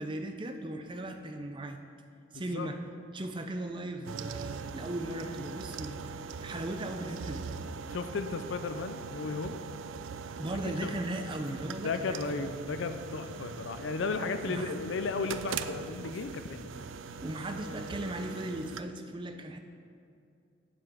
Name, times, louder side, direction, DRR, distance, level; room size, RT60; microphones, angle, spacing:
voice 1, 0.0-1.8 2.3-2.8 3.1-7.5 10.4-12.5 14.4-14.8 17.2-19.6, right 1 dB, 25° right, 5 dB, 0.5 m, -37 dB
voice 2, 2.3-2.7 7.9-9.6 10.8-10.9 11.8-16.7, left 4 dB, 70° left, 9 dB, 0.4 m, -34 dB
sound 1, 4.1-18.8, right 5 dB, 80° right, 0.4 m, -41 dB
8.2 x 7.6 x 4.9 m, 2.5 s
head